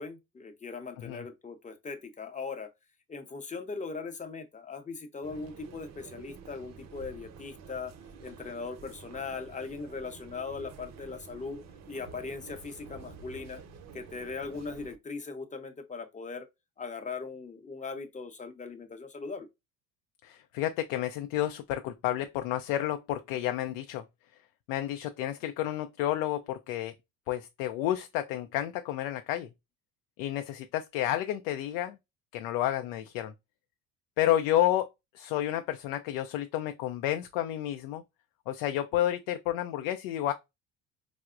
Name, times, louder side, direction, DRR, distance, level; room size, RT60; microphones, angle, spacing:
voice 1, 0.0-2.7 3.1-7.9 8.2-11.6 11.9-13.6 13.9-16.5 16.8-19.5, left 4 dB, 20° left, 0.8 m, -39 dB
sound 1, 5.2-15.0, right 5 dB, 40° right, 0.7 m, -49 dB
voice 2, 20.2-24.0 24.7-26.9 27.3-29.5 30.2-32.0 32.3-33.3 34.2-34.9 35.1-38.0 38.5-40.3, left 12 dB, 70° left, 0.5 m, -30 dB
4.7 x 2.0 x 2.5 m
hypercardioid pair, 75°, 41 cm